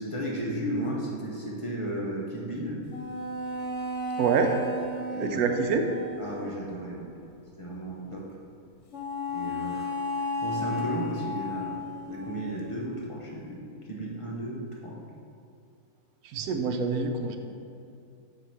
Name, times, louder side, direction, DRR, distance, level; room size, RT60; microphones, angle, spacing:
voice 1, 0.0-2.8 5.1-5.5 6.2-7.1 7.6-8.3 9.3-13.6 13.9-15.0, right 1 dB, 30° left, -4 dB, 0.7 m, -34 dB
sound 1, 2.9-6.5 8.9-12.8, left 1 dB, 55° left, 1.0 m, -34 dB
voice 2, 4.2-4.5 5.2-5.9 16.3-17.4, right 5 dB, 80° right, 5 dB, 1.1 m, -26 dB
7.6 x 2.9 x 5.6 m, 2.6 s
omnidirectional pair, 1.6 m